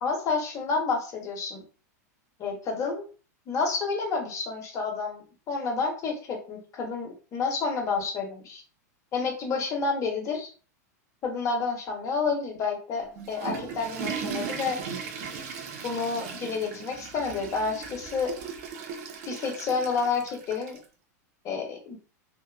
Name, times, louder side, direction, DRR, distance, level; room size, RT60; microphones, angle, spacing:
voice 1, 0.0-1.6 2.4-3.0 3.5-8.6 9.1-10.5 11.2-14.8 15.8-18.3 19.3-20.8 21.4-21.9, left 4 dB, 35° left, 1 dB, 1.0 m, -29 dB
Water / Toilet flush, 13.0-20.8, right 6 dB, 60° right, 0.6 m, -37 dB
2.7 x 2.3 x 2.3 m, 0.37 s
hypercardioid pair, 115°, 9 cm